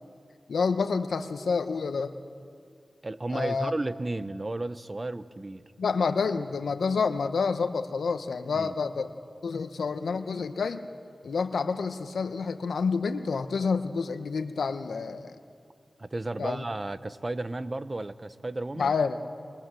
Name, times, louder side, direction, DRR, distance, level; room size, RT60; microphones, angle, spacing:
voice 1, 0.5-2.1 3.3-3.7 5.8-9.1 9.4-10.9 11.2-15.4 16.4-16.6 18.8-19.2, left 5 dB, 90° left, 9 dB, 1.0 m, -28 dB
voice 2, 3.0-5.7 8.5-8.8 16.0-18.9, right 2 dB, 40° right, 13 dB, 0.9 m, -33 dB
23.0 x 22.5 x 7.7 m, 2.3 s
cardioid pair, 40°, 0 cm